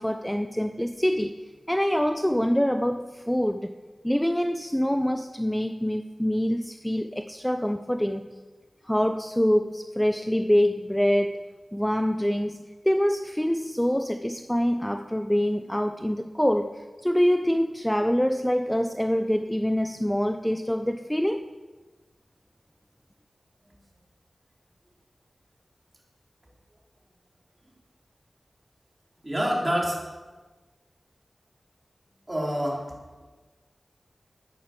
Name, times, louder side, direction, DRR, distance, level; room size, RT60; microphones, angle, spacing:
voice 1, 0.0-1.4 1.7-3.7 4.0-8.3 8.8-21.5, equal, 5° left, 8 dB, 0.6 m, -25 dB
voice 2, 29.2-30.0 32.3-32.9, equal, 25° right, -3 dB, 4.0 m, -27 dB
10.0 x 9.2 x 7.0 m, 1.3 s
cardioid pair, 45°, 0 cm